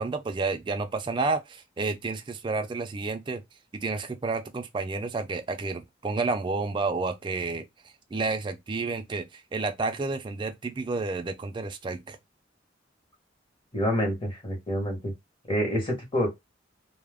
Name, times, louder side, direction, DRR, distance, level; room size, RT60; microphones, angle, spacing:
voice 1, 0.0-3.4 3.7-7.6 8.1-12.2, right 3 dB, 25° right, 0.3 m, -30 dB
voice 2, 13.7-15.1 15.5-16.3, equal, 25° left, 1.1 m, -27 dB
2.3 x 2.0 x 3.3 m
head